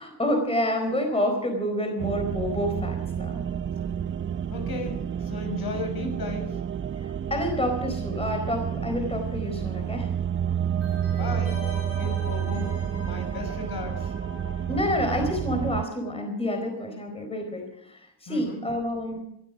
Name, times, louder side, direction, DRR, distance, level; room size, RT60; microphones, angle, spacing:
voice 1, 0.0-3.4 7.0-10.1 10.9-11.0 14.7-19.2, left 1 dB, 15° left, 3 dB, 4.3 m, -28 dB
sound 1, 2.0-15.9, right 9 dB, 30° right, 0.6 m, -30 dB
voice 2, 4.5-6.6 11.1-11.6 11.9-12.7 13.0-14.1 18.3-18.6, left 3 dB, 55° left, 3 dB, 6.6 m, -35 dB
sound 2, 10.8-16.3 16.5-16.6, left 1 dB, 30° left, 7.0 m, -43 dB
21.5 x 12.5 x 5.1 m, 0.77 s
cardioid pair, 95°, 44 cm